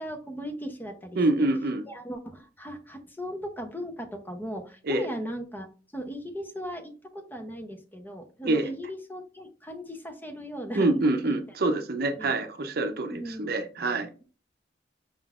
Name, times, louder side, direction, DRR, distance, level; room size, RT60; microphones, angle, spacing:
voice 1, 0.0-1.5 1.9-5.7 5.9-11.4 12.2-12.4 13.1-13.7, equal, 10° left, 5 dB, 0.7 m, -38 dB
voice 2, 1.2-1.8 4.9-5.1 8.4-8.7 10.8-14.1, right 2 dB, 55° right, 7 dB, 0.6 m, -26 dB
5.7 x 3.7 x 2.4 m, 0.35 s
head